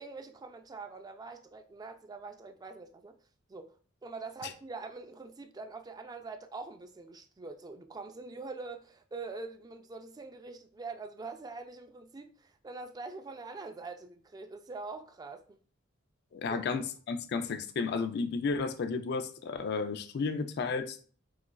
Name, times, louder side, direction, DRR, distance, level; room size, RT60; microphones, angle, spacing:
voice 1, 0.0-3.2 3.5-3.8 4.0-15.6 16.5-16.6, right 3 dB, 20° right, 0.3 m, -44 dB
voice 2, 16.3-21.0, left 4 dB, 55° left, 0.3 m, -33 dB
4.0 x 2.4 x 2.2 m
head